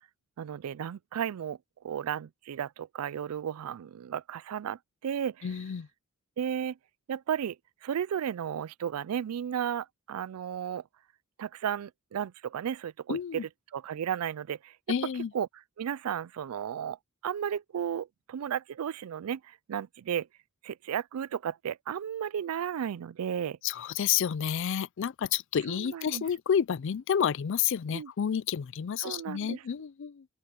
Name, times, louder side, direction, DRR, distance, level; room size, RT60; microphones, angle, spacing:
voice 1, 0.4-1.6 1.8-5.5 6.4-6.8 7.1-7.6 7.8-10.8 11.4-14.8 15.3-15.5 15.8-17.0 17.2-20.3 20.6-23.6 25.7-26.2 27.9-28.1 29.0-29.6, right 8 dB, 80° right, 0.4 m, -34 dB
voice 2, 5.4-5.9 13.1-13.5 14.9-15.3 23.6-30.3, left 8 dB, 60° left, 0.4 m, -30 dB
open air
head